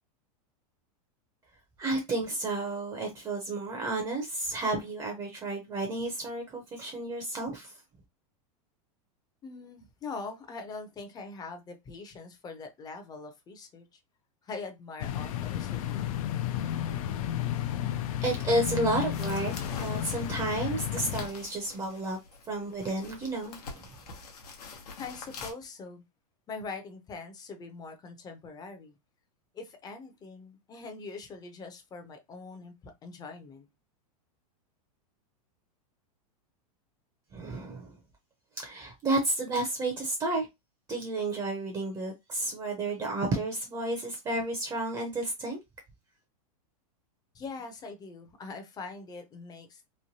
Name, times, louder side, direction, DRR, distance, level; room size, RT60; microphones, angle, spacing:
voice 1, 1.8-7.7 18.2-22.2 22.5-23.9 37.3-37.9 38.6-40.5 40.9-45.6, right 2 dB, 20° right, 0.6 m, -31 dB
voice 2, 9.4-14.0 14.4-16.1 25.0-26.0 26.5-29.0 29.5-33.7 47.3-49.9, left 4 dB, 20° left, 0.6 m, -43 dB
sound 1, 15.0-21.3, left 11 dB, 65° left, 0.4 m, -32 dB
sound 2, 19.1-25.5, left 4 dB, 85° left, 0.9 m, -45 dB
3.1 x 2.2 x 2.7 m
supercardioid pair, 135°, 19 cm